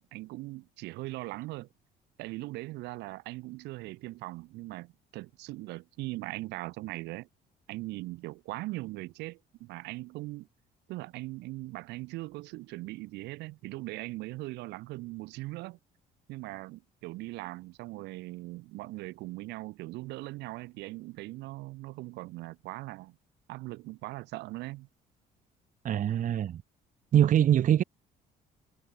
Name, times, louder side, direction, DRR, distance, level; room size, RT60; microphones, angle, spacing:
voice 1, 0.0-1.7 2.2-7.3 7.7-10.5 10.9-15.8 16.3-23.2 23.5-24.9, right 20 dB, 90° right, 2.9 m, -40 dB
voice 2, 25.8-26.6 27.1-27.8, right 10 dB, 50° right, 1.2 m, -23 dB
cardioid pair, 110°, 17 cm